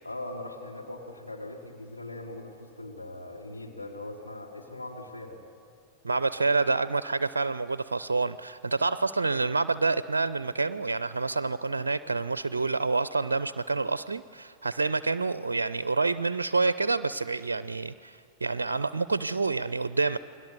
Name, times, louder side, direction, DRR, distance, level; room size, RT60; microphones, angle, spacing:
voice 1, 0.0-5.4, left 1 dB, 85° left, -1 dB, 3.0 m, -40 dB
voice 2, 6.0-20.2, right 3 dB, 75° right, 15 dB, 0.5 m, -28 dB
29.0 x 22.0 x 6.7 m, 2.4 s
figure-of-eight pair, 90°, 0 cm